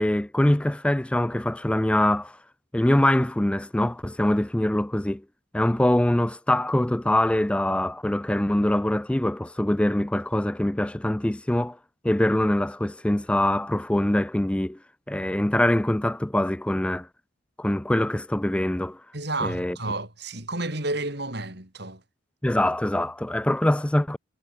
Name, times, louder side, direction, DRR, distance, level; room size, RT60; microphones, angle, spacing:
voice 1, 0.0-2.4 2.7-5.2 5.5-11.8 12.0-14.8 15.1-17.1 17.6-19.0 19.4-19.8 22.4-24.2, left 1 dB, 5° left, 0.3 m, -23 dB
voice 2, 19.1-22.0, right 2 dB, 55° right, 5.9 m, -31 dB
head